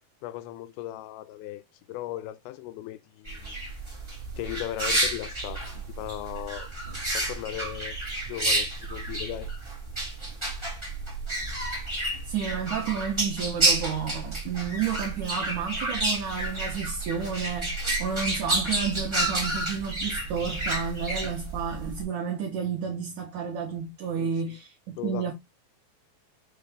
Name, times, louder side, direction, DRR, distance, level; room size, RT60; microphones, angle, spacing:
voice 1, 0.2-1.6 1.9-3.6 4.4-6.7 7.1-8.0 8.3-9.5 24.2-24.6 25.0-25.3, left 14 dB, 85° left, 2.4 m, -37 dB
sound 1, 3.3-22.0, right 1 dB, 50° right, 0.3 m, -30 dB
voice 2, 12.3-25.3, right 7 dB, 75° right, 1.8 m, -31 dB
6.2 x 2.3 x 3.3 m
omnidirectional pair, 4.2 m